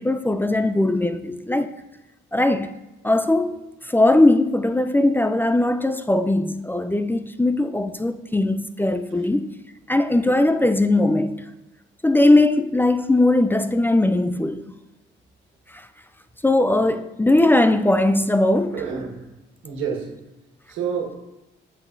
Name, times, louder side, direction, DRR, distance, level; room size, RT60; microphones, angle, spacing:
voice 1, 0.0-1.7 2.3-2.7 3.0-3.6 3.9-9.5 9.9-11.4 12.0-14.6 15.7-15.9 16.4-18.9, left 2 dB, 10° left, 0.4 m, -19 dB
voice 2, 18.7-19.2 19.6-20.1 20.7-21.2, right 6 dB, 90° right, 1.6 m, -29 dB
8.3 x 7.5 x 2.6 m
cardioid pair, 90°, 20 cm